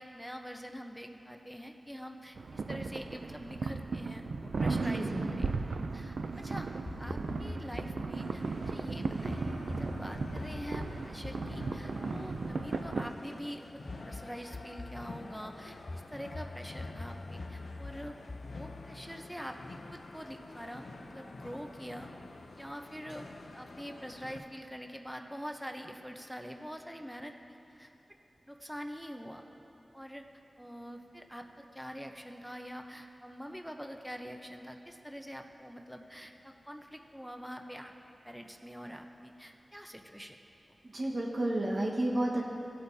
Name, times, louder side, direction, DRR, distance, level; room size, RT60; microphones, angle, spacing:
voice 1, 0.0-6.7 7.0-18.1 18.5-22.1 22.6-23.3 23.5-27.3 27.7-27.9 28.5-29.5 29.9-30.2 30.6-37.9 38.2-40.4, equal, ahead, 3 dB, 0.8 m, -45 dB
sound 1, 2.3-13.1, right 4 dB, 85° right, 0.4 m, -36 dB
voice 2, 4.8-5.3 40.9-42.4, right 1 dB, 60° right, -2 dB, 1.4 m, -31 dB
sound 2, 6.9-8.1 9.3-13.0 13.9-15.1 15.9-19.8, left 2 dB, 45° left, 0.3 m, -45 dB
sound 3, 8.2-24.4, left 2 dB, 85° left, 0.6 m, -48 dB
16.5 x 8.4 x 2.8 m, 2.9 s
cardioid pair, 45°, 0 cm